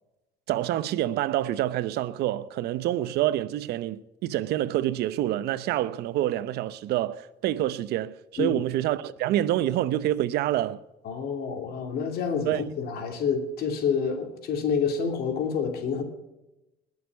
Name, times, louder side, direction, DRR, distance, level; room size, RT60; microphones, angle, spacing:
voice 1, 0.5-10.8 12.4-12.6, right 13 dB, 75° right, 0.8 m, -27 dB
voice 2, 11.0-16.0, left 6 dB, 70° left, 2.8 m, -28 dB
20.5 x 6.8 x 8.1 m
supercardioid pair, 90°, 17 cm